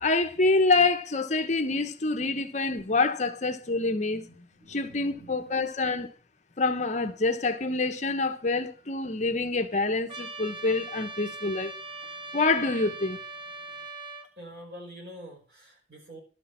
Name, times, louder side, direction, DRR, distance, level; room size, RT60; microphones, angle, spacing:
voice 1, 0.0-4.2 4.7-6.1 6.6-11.7 12.3-13.2, left 3 dB, 40° left, 1.0 m, -26 dB
voice 2, 4.3-5.5 14.4-16.2, equal, 65° right, 5.4 m, -47 dB
Trumpet, 10.1-14.3, right 3 dB, 30° right, 1.4 m, -40 dB
12.0 x 6.5 x 7.3 m
head